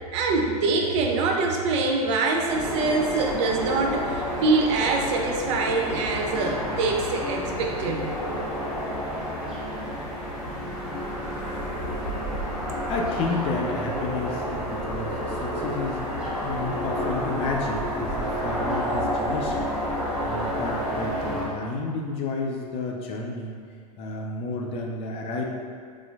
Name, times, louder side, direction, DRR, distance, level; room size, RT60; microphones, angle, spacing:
voice 1, 0.1-8.1, right 3 dB, 50° right, 2 dB, 0.4 m, -24 dB
sound 1, 2.5-21.5, equal, 5° right, 0.9 m, -30 dB
voice 2, 12.9-19.7 20.2-23.5 24.0-25.4, left 3 dB, 30° left, 0 dB, 0.4 m, -31 dB
4.1 x 2.5 x 2.3 m, 2.2 s
figure-of-eight pair, 95°, 20 cm